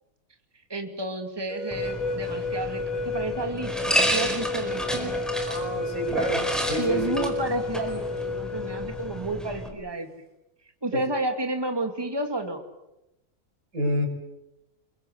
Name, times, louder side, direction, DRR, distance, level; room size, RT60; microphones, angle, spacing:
voice 1, 0.7-5.1 6.8-10.1 10.8-12.6, right 2 dB, 15° right, 5 dB, 2.4 m, -31 dB
sound 1, 1.5-9.3, left 3 dB, 75° left, 5.3 m, -32 dB
sound 2, 1.7-9.7, equal, ahead, 4.4 m, -31 dB
voice 2, 5.5-7.2 10.9-11.0 13.7-14.1, equal, 80° right, 4 dB, 5.5 m, -29 dB
29.5 x 22.5 x 8.1 m, 0.90 s
omnidirectional pair, 1.5 m